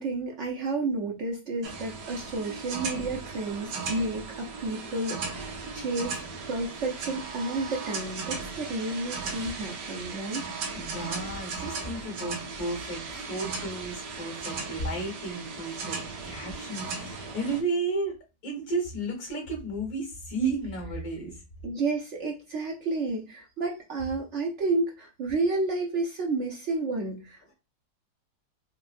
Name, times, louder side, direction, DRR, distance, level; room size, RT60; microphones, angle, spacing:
voice 1, 0.0-6.2 6.5-10.4 21.6-27.5, right 3 dB, 65° right, 0 dB, 0.7 m, -31 dB
sound 1, 1.6-17.6, right 4 dB, 85° right, 1.4 m, -37 dB
voice 2, 10.7-18.2 18.4-21.4, right 2 dB, 60° left, 0 dB, 1.8 m, -33 dB
4.7 x 2.0 x 2.5 m, 0.28 s
omnidirectional pair, 1.8 m